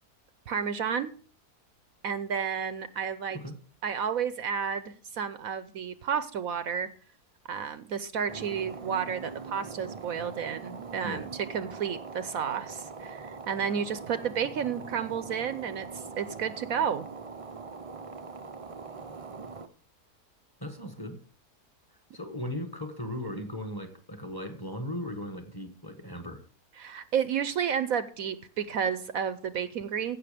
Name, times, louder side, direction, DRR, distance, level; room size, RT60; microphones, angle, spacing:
voice 1, 0.5-1.1 2.0-3.4 3.8-6.9 7.5-17.1 26.8-30.2, right 7 dB, 65° right, 13 dB, 1.1 m, -31 dB
sound 1, 8.3-19.7, right 4 dB, 35° right, 0.5 m, -42 dB
voice 2, 20.6-21.2 22.1-26.5, equal, 15° left, 7 dB, 1.3 m, -37 dB
16.0 x 6.5 x 5.0 m, 0.42 s
omnidirectional pair, 1.7 m